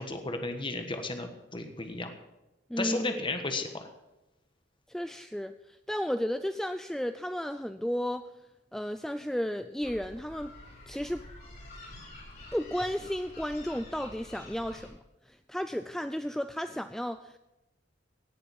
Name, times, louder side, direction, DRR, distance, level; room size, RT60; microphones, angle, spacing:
voice 1, 0.0-2.1 2.8-3.9, left 2 dB, 25° left, 6 dB, 1.4 m, -34 dB
voice 2, 2.7-3.2 4.9-8.3 8.7-10.5 10.9-11.3 12.5-15.0 15.3-17.4, equal, ahead, 10 dB, 0.4 m, -33 dB
sound 1, 9.8-14.9, left 1 dB, 55° left, 5.3 m, -48 dB
17.5 x 7.0 x 7.2 m, 0.97 s
head